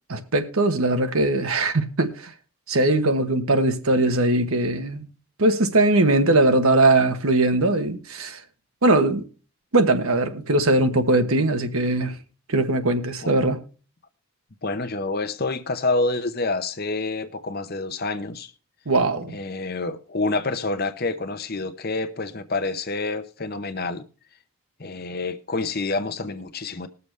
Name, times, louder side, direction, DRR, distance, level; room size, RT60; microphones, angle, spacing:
voice 1, 0.1-2.3 2.7-5.1 5.4-8.4 8.8-9.2 9.7-12.1 12.5-13.6 18.9-19.4, right 2 dB, 70° right, 1.1 m, -20 dB
voice 2, 14.6-18.5 19.3-24.0 24.8-26.9, left 3 dB, 45° left, 0.8 m, -27 dB
20.5 x 6.9 x 3.3 m
head